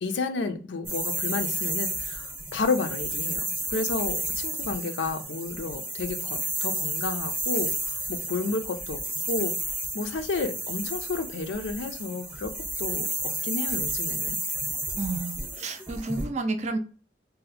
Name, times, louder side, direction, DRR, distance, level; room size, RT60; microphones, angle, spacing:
voice 1, 0.0-3.4 3.7-9.0 9.3-9.5 9.9-12.5 12.8-14.4, left 4 dB, 85° left, 0.5 m, -31 dB
sound 1, 0.9-16.2, right 2 dB, 10° right, 0.7 m, -32 dB
voice 2, 15.0-16.8, right 3 dB, 40° right, 0.4 m, -31 dB
2.7 x 2.1 x 4.0 m
head